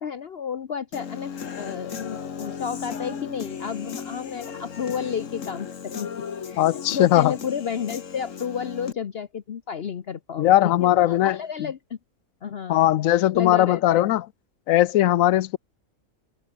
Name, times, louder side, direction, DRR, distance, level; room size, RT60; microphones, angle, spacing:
voice 1, 0.0-6.1 6.4-12.0 12.4-12.9 13.3-14.0, left 7 dB, 55° left, 1.0 m, -32 dB
Human voice / Guitar, 0.9-8.9, left 7 dB, 70° left, 1.8 m, -36 dB
voice 2, 6.5-7.3 10.4-11.7 12.7-14.2 14.7-15.6, left 14 dB, 85° left, 1.0 m, -19 dB
omnidirectional pair, 1.4 m